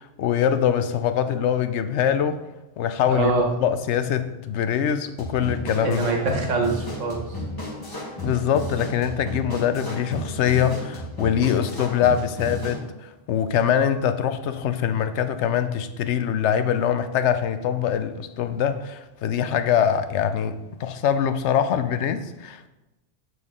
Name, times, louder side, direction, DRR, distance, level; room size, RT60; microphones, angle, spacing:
voice 1, 0.0-2.4 2.8-3.3 3.6-6.1 8.2-22.7, left 8 dB, 75° left, 0.9 m, -23 dB
voice 2, 3.1-3.5 5.8-7.2, right 3 dB, 90° right, 1.6 m, -23 dB
sound 1, 5.2-12.9, left 1 dB, 20° left, 1.1 m, -33 dB
7.0 x 6.1 x 3.6 m
omnidirectional pair, 1.2 m